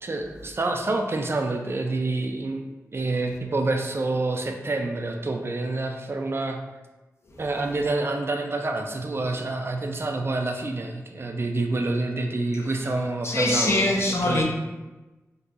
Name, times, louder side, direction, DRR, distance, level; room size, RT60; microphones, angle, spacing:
voice 1, 0.0-2.6 2.9-6.6 7.4-13.9 14.2-14.4, right 2 dB, 45° right, 0.3 m, -27 dB
voice 2, 13.2-14.4, left 1 dB, 45° left, 0.6 m, -22 dB
3.9 x 2.7 x 2.4 m
wide cardioid pair, 100°, 6 cm